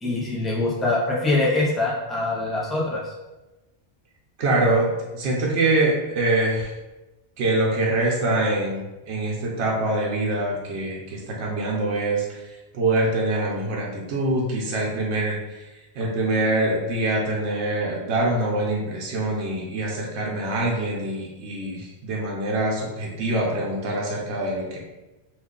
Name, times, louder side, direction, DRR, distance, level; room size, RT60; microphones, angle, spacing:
voice 1, 0.0-3.1, left 2 dB, ahead, -4 dB, 0.4 m, -24 dB
voice 2, 4.4-6.7 7.4-12.4 12.7-15.7 15.9-24.8, right 2 dB, 90° right, -2 dB, 1.0 m, -24 dB
3.1 x 2.4 x 3.6 m, 1.1 s
omnidirectional pair, 1.1 m